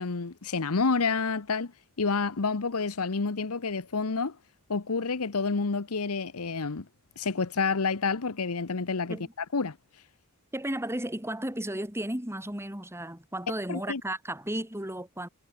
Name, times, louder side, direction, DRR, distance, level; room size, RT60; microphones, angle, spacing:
voice 1, 0.0-1.7 2.0-4.4 4.7-6.9 7.2-9.2 9.5-9.8 13.7-14.0, left 4 dB, 80° left, 1.0 m, -29 dB
voice 2, 10.5-15.3, right 1 dB, 10° right, 5.8 m, -34 dB
head